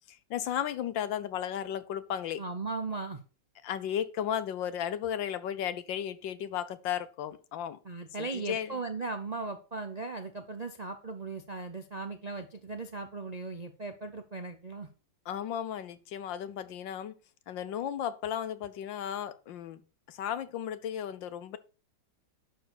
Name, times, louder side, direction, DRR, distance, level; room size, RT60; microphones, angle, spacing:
voice 1, 0.1-2.4 3.6-7.8 8.2-8.8 15.3-17.1 17.5-19.8 20.1-21.6, left 9 dB, 80° left, 14 dB, 1.6 m, -34 dB
voice 2, 2.4-3.2 7.8-14.9, right 3 dB, 45° right, 7 dB, 0.5 m, -38 dB
11.5 x 4.7 x 6.1 m, 0.34 s
omnidirectional pair, 2.0 m